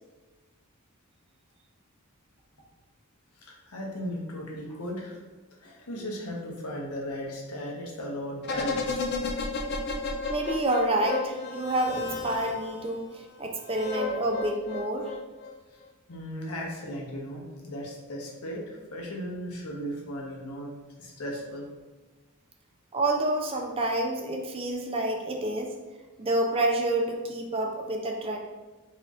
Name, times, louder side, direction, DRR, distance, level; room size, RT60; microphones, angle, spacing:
voice 1, 3.4-5.2 5.6-9.0 16.1-21.7, equal, 85° left, -2 dB, 1.0 m, -36 dB
sound 1, 8.4-12.9 13.7-15.5 15.8-15.9, left 3 dB, 50° left, 0.4 m, -32 dB
voice 2, 10.3-15.1 22.9-25.7 26.2-28.4, right 1 dB, 25° right, 2 dB, 0.4 m, -28 dB
4.2 x 4.0 x 2.5 m, 1.2 s
head